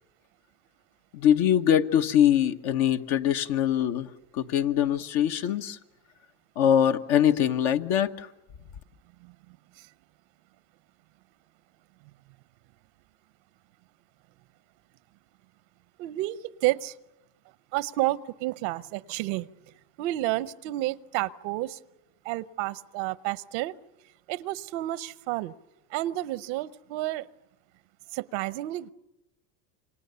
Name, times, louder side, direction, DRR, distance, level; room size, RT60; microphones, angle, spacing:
voice 1, 1.1-5.8 6.6-8.3, left 10 dB, 70° left, 7 dB, 1.4 m, -23 dB
voice 2, 9.2-9.9 16.0-16.9 17.7-19.5 20.0-21.8 22.2-23.7 24.3-25.5 25.9-27.3 28.1-28.9, right 17 dB, 80° right, 17 dB, 0.8 m, -30 dB
28.0 x 25.5 x 6.9 m, 0.94 s
supercardioid pair, 90°, 50 cm